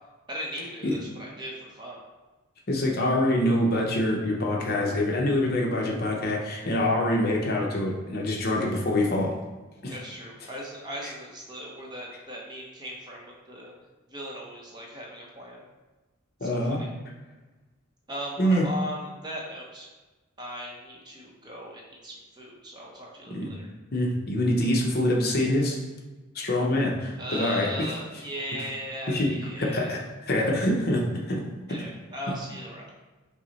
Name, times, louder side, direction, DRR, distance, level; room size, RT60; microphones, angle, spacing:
voice 1, 0.3-2.0 9.9-13.7 14.1-15.6 16.4-16.9 18.1-19.9 20.4-23.7 27.2-30.0 31.7-32.9, equal, 20° right, -2 dB, 0.6 m, -38 dB
voice 2, 2.7-9.3 9.8-9.9 16.4-16.8 18.4-18.7 23.3-23.5 23.9-25.8 26.3-27.7 29.1-31.4, left 1 dB, 45° left, -1 dB, 0.7 m, -25 dB
5.8 x 2.0 x 4.0 m, 1.2 s
head